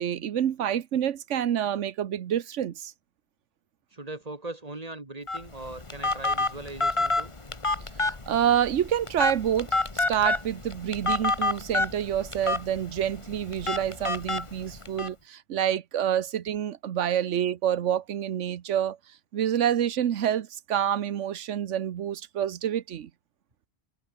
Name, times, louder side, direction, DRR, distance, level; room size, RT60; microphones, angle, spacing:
voice 1, 0.0-2.9 8.0-9.7 9.9-19.0 19.3-23.1, right 10 dB, 85° right, 1.2 m, -27 dB
voice 2, 3.9-7.3, right 2 dB, 30° right, 2.3 m, -39 dB
Telephone, 5.3-15.1, left 3 dB, 25° left, 1.6 m, -29 dB
open air
omnidirectional pair, 1.2 m